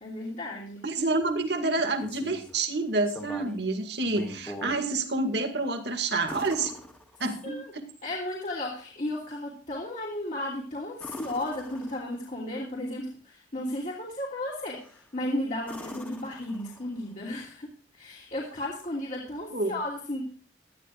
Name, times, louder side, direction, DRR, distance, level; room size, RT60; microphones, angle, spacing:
voice 1, 0.0-0.8 7.4-7.7 8.0-20.2, left 1 dB, 40° left, -3 dB, 2.9 m, -34 dB
voice 2, 0.8-6.7 7.2-7.8 19.5-19.7, right 3 dB, 60° right, 6 dB, 2.1 m, -28 dB
sound 1, 1.7-2.6 3.0-3.7 4.0-4.8 6.3-7.5 10.9-12.3 14.7-15.1 15.6-17.0 19.1-19.2, left 1 dB, 10° left, 2.1 m, -42 dB
18.0 x 12.5 x 2.5 m, 0.42 s
head